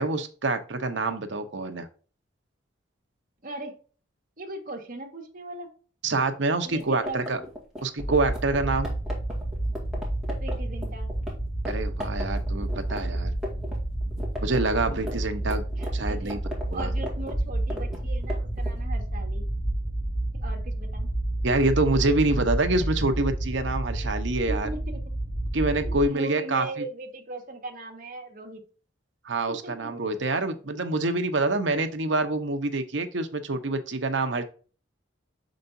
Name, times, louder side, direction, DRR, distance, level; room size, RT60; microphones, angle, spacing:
voice 1, 0.0-1.9 6.0-7.4 7.8-8.9 11.6-13.3 14.4-15.7 15.9-16.4 16.7-16.9 21.4-24.7 25.5-26.8 29.2-34.4, right 2 dB, 70° right, 7 dB, 0.9 m, -26 dB
voice 2, 3.4-3.8 4.4-5.7 6.6-7.5 10.4-11.1 14.9-15.0 15.8-16.4 16.7-19.5 20.4-21.1 22.8-22.9 24.0-24.1 24.5-25.0 25.8-28.6 29.5-29.9, right 2 dB, 45° right, 1 dB, 1.5 m, -39 dB
sound 1, 6.7-11.3 11.6-11.7 12.0-13.8 14.0-18.8, left 1 dB, 5° right, 2.0 m, -37 dB
sound 2, 8.0-26.1, right 1 dB, 50° left, 3.3 m, -30 dB
6.9 x 5.1 x 2.7 m, 0.39 s
head